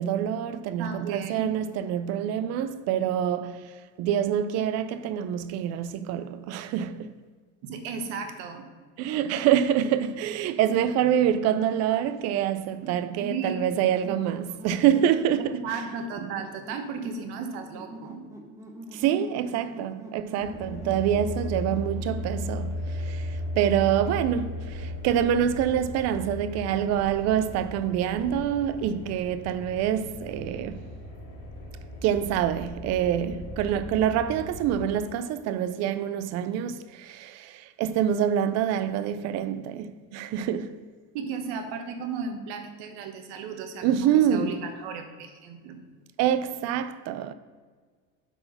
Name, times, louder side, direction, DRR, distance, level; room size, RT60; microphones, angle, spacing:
voice 1, 0.0-7.2 9.0-15.7 16.2-16.3 18.9-30.9 32.0-40.8 43.8-44.7 46.2-47.3, right 9 dB, 50° right, 0.5 m, -26 dB
voice 2, 0.8-1.5 7.6-8.7 13.1-13.6 15.6-18.2 41.1-45.8, right 5 dB, 70° right, 1.3 m, -35 dB
sound 1, 14.0-22.7, right 1 dB, 10° right, 0.9 m, -44 dB
sound 2, 20.4-34.9, left 1 dB, 45° left, 2.5 m, -36 dB
8.0 x 4.6 x 5.5 m
cardioid pair, 135°, 33 cm